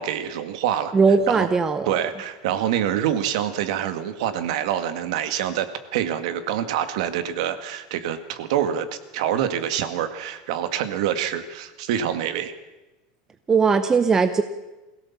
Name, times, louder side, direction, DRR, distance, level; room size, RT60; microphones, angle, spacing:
voice 1, 0.0-0.9 1.3-1.5 1.9-8.9 9.1-12.5, right 10 dB, 70° right, 11 dB, 1.9 m, -26 dB
voice 2, 0.9-2.0 13.5-14.4, right 5 dB, 15° right, 9 dB, 0.8 m, -19 dB
23.0 x 17.0 x 7.3 m, 1.1 s
supercardioid pair, 160°, 4 cm